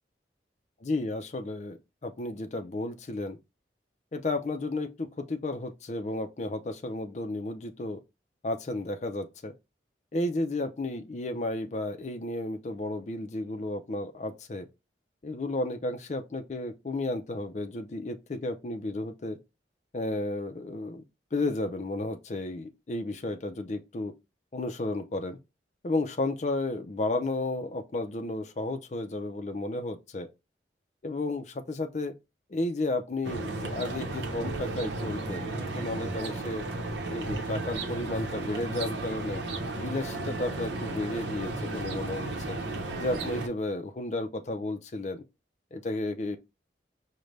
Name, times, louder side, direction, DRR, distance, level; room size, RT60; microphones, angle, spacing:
voice 1, 0.8-3.4 4.1-8.0 8.4-9.5 10.1-14.7 15.2-19.4 19.9-21.0 21.3-24.1 24.5-25.4 25.8-30.3 31.0-32.1 32.5-36.6 37.1-39.4 39.8-42.6 43.0-45.2 45.7-46.4, left 2 dB, 40° left, 0.4 m, -33 dB
sound 1, 33.2-43.5, right 2 dB, 85° right, 0.8 m, -34 dB
5.1 x 2.2 x 3.2 m
head